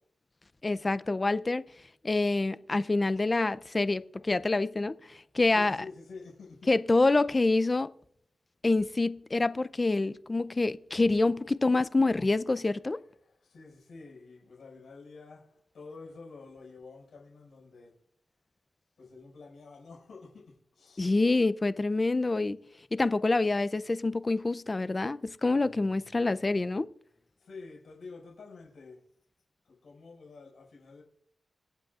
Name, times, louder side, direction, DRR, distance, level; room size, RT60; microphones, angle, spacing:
voice 1, 0.6-1.6 2.0-5.0 5.3-5.8 6.7-7.9 8.6-13.0 21.0-22.6 22.9-26.9, left 2 dB, 25° left, 0.4 m, -26 dB
voice 2, 5.5-6.7 6.9-7.1 13.2-17.9 19.0-21.1 27.4-29.0 29.7-31.0, left 4 dB, 80° left, 5.2 m, -49 dB
25.5 x 8.9 x 2.4 m
wide cardioid pair, 150°, 0 cm